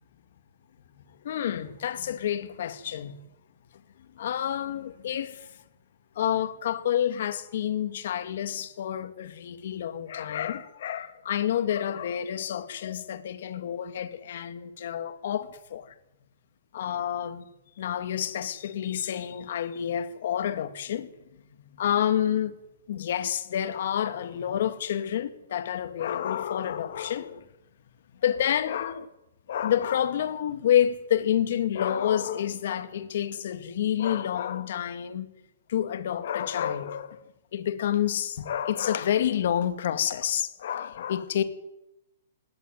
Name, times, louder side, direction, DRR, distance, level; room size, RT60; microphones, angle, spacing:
voice 1, 1.2-3.2 4.2-5.5 6.2-15.9 16.7-17.5 17.8-21.1 21.8-22.6 22.9-27.5 28.2-29.1 29.5-35.3 35.7-37.2 37.5-41.4, left 10 dB, 55° left, 2.2 m, -28 dB
20.0 x 18.0 x 9.5 m
hypercardioid pair, 165°, 0 cm